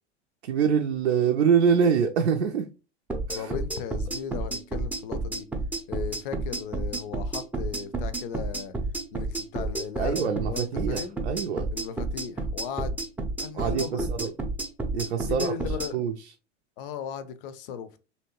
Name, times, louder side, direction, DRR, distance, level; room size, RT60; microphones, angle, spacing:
voice 1, 0.4-2.7 3.3-3.5 10.0-11.7 13.5-14.3 14.9-16.3, right 7 dB, 75° right, 0.5 m, -25 dB
sound 1, 3.1-15.9, right 2 dB, 5° right, 0.5 m, -31 dB
voice 2, 3.3-5.5 5.9-8.7 9.1-11.2 11.7-13.1 13.4-14.3 15.3-16.0 16.8-18.0, left 7 dB, 50° left, 0.5 m, -36 dB
3.2 x 2.8 x 2.8 m
figure-of-eight pair, 85°, 34 cm